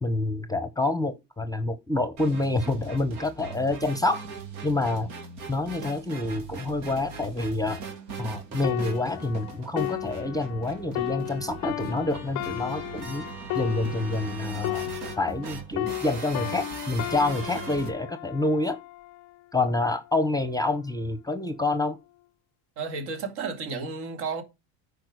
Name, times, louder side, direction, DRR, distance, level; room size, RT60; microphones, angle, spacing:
voice 1, 0.0-4.3 4.6-5.1 5.5-7.8 8.2-13.3 13.5-14.9 15.2-18.8 19.5-22.0, left 2 dB, 10° left, 0.7 m, -27 dB
sound 1, 2.2-17.9, right 5 dB, 85° right, 2.7 m, -40 dB
sound 2, 8.6-15.5 15.8-19.3 20.0-20.2, left 21 dB, 45° left, 0.5 m, -34 dB
voice 2, 22.8-24.4, right 4 dB, 65° right, 2.8 m, -32 dB
9.1 x 5.0 x 6.3 m
supercardioid pair, 100°, 43 cm